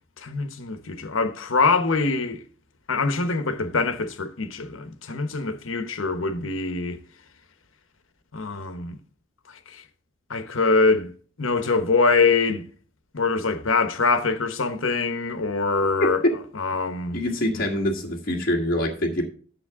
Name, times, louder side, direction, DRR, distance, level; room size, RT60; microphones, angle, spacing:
voice 1, 0.2-2.4 2.9-7.0 8.3-9.0 9.7-9.8 10.3-11.1 11.4-12.6 13.1-16.2 16.5-17.2 17.5-17.6, left 4 dB, 90° left, 1.1 m, -24 dB
voice 2, 17.1-19.2, left 1 dB, 45° left, 1.6 m, -25 dB
10.0 x 7.1 x 3.6 m
head